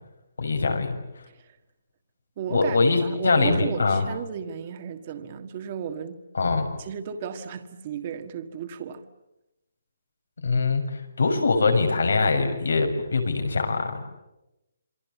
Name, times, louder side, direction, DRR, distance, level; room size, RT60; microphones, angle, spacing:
voice 1, 0.4-0.9 2.5-4.0 6.3-6.7 10.4-14.0, left 3 dB, 85° left, 6.6 m, -23 dB
voice 2, 2.4-6.2 6.8-9.0, right 8 dB, 25° right, 1.6 m, -34 dB
28.0 x 23.5 x 8.3 m
hypercardioid pair, 175°, 0 cm